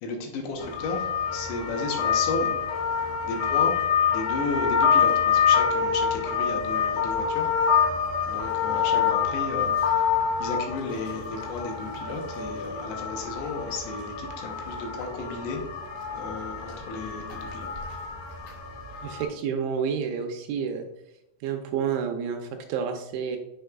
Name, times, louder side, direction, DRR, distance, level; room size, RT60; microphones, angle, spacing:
voice 1, 0.0-2.5 3.2-3.8 4.1-7.5 8.3-10.1 10.4-15.6 16.1-17.7, left 3 dB, 75° left, 2 dB, 2.8 m, -34 dB
sound 1, 0.6-19.2, left 7 dB, 50° left, 3.5 m, -26 dB
voice 2, 19.0-20.9 21.4-23.4, right 7 dB, 80° right, 4 dB, 2.9 m, -29 dB
7.1 x 6.3 x 2.3 m, 0.85 s
omnidirectional pair, 5.6 m